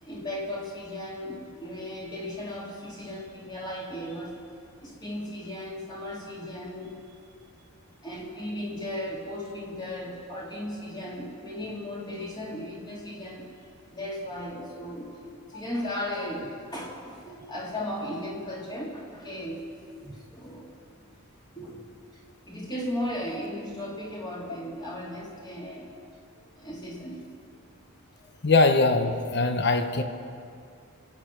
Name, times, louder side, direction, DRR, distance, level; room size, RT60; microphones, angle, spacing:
voice 1, 0.0-4.4 4.8-6.9 8.0-13.5 13.9-19.6 20.0-20.7 21.5-21.8 22.5-25.9 26.6-27.2 28.2-28.3, left 1 dB, 20° left, -4 dB, 2.9 m, -36 dB
voice 2, 28.4-30.0, left 3 dB, 50° left, 7 dB, 1.0 m, -22 dB
24.5 x 8.8 x 6.0 m, 2.3 s
head